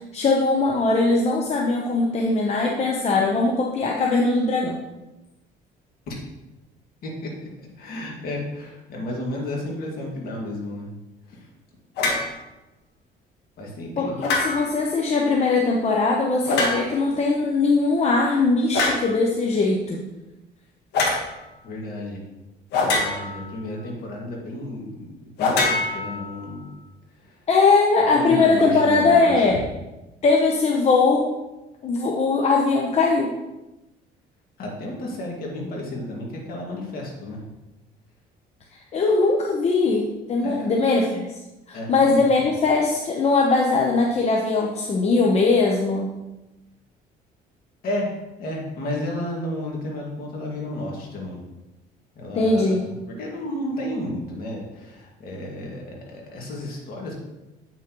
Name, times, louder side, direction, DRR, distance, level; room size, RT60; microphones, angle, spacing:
voice 1, 0.0-4.8 14.0-20.0 27.5-29.6 30.2-31.3 31.8-33.3 38.9-41.3 41.7-46.1 52.4-52.8, left 3 dB, 40° left, -1 dB, 0.9 m, -20 dB
voice 2, 7.8-10.9 11.3-11.5 12.0-12.2 13.6-14.4 21.6-22.2 22.8-26.7 27.1-27.5 28.1-29.6 34.6-37.4 40.4-41.0 41.7-42.5 47.8-48.1 48.4-51.4 52.2-57.2, left 1 dB, 60° left, -1 dB, 2.1 m, -32 dB
sound 1, 12.0-12.3 14.2-14.8 16.4-17.1 18.7-19.1 20.9-21.2 22.7-23.5 25.4-26.5, left 3 dB, 80° left, 1.5 m, -24 dB
8.1 x 6.0 x 3.0 m, 1.0 s
cardioid pair, 110°, 17 cm